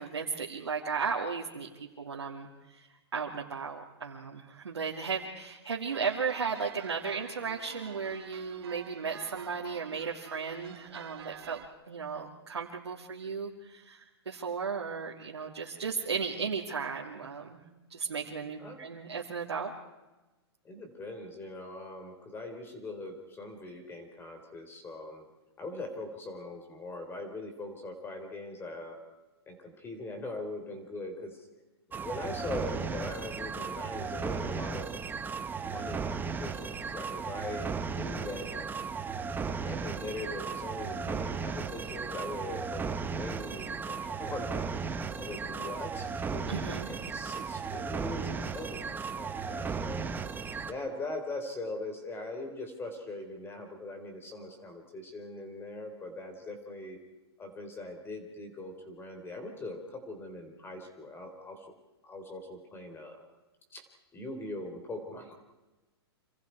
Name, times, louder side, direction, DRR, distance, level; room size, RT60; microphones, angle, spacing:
voice 1, 0.0-1.7 2.0-11.6 11.9-17.6 17.9-19.7 46.5-46.9, right 5 dB, 90° right, -2 dB, 2.7 m, -35 dB
sound 1, 5.9-11.7, right 10 dB, 65° right, 1.8 m, -49 dB
voice 2, 20.6-25.2 25.6-29.0 29.5-31.5 31.9-34.9 35.6-38.7 39.4-50.0 50.6-57.0 57.4-61.7 62.0-63.3 63.7-63.8 64.1-65.3, left 2 dB, 15° left, 5 dB, 4.1 m, -41 dB
sound 2, 31.9-50.7, right 5 dB, 15° right, 1.3 m, -36 dB
27.5 x 27.0 x 4.7 m, 1.1 s
hypercardioid pair, 125°, 14 cm